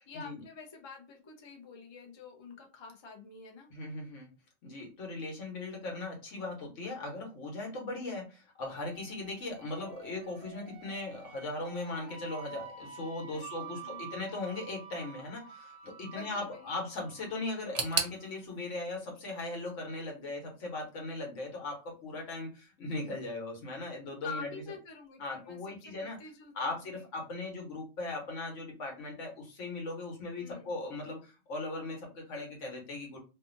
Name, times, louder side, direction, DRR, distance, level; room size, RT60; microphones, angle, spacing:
voice 1, 0.1-3.7 8.0-8.2 13.3-14.0 16.1-16.9 24.2-27.1 30.4-30.7, left 5 dB, 40° left, 2 dB, 0.4 m, -47 dB
voice 2, 3.7-4.3 4.6-8.2 8.6-24.5 25.2-26.2 26.5-33.2, left 2 dB, 75° left, 1 dB, 1.3 m, -38 dB
sound 1, 8.6-18.3, right 6 dB, 60° right, 0.7 m, -49 dB
sound 2, 17.7-20.6 20.9-21.7 22.0-22.1 22.9-23.0, right 6 dB, 85° right, 0.3 m, -38 dB
2.6 x 2.4 x 2.5 m, 0.31 s
omnidirectional pair, 1.3 m